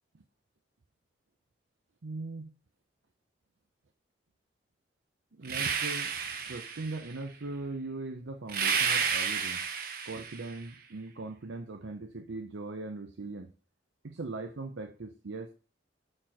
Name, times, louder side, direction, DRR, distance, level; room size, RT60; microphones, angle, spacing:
voice 1, 2.0-2.5 5.3-9.7 10.0-13.5 14.0-15.5, right 3 dB, 75° right, 6 dB, 0.7 m, -40 dB
sound 1, 5.4-7.1 8.5-10.6, right 6 dB, 50° right, 0.9 m, -31 dB
6.6 x 4.4 x 4.4 m, 0.36 s
head